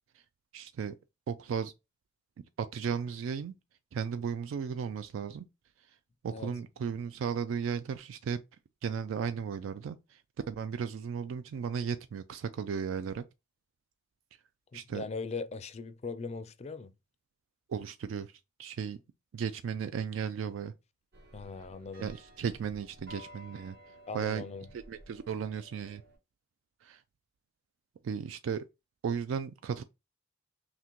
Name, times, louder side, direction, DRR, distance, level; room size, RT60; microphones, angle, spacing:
voice 1, 0.5-1.0 1.3-1.7 2.6-3.5 3.9-5.4 6.2-8.4 8.8-10.2 10.5-13.2 14.7-15.0 17.7-18.3 18.6-19.0 19.3-20.7 22.0-23.7 24.1-24.4 24.7-26.0 26.8-27.0 28.0-28.6 29.0-29.8, right 7 dB, 75° right, 0.3 m, -35 dB
voice 2, 14.7-16.9 21.3-22.1 24.1-24.7, left 4 dB, 35° left, 0.4 m, -39 dB
sound 1, 21.1-26.2, equal, 55° right, 0.9 m, -54 dB
5.8 x 2.1 x 2.9 m
head